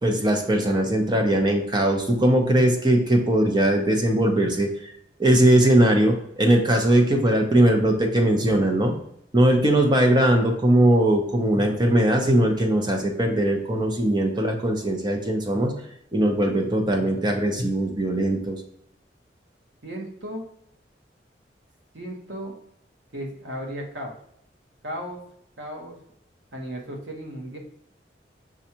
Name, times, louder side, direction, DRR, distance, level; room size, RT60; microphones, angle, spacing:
voice 1, 0.0-4.9 5.2-9.0 9.3-15.7 16.1-18.6, right 1 dB, 25° right, 3 dB, 0.7 m, -20 dB
voice 2, 19.8-20.5 21.9-22.5 23.1-24.2 24.8-25.2 25.6-26.0 26.5-27.6, equal, 90° right, 1 dB, 1.1 m, -35 dB
6.1 x 2.4 x 2.8 m, 0.73 s
head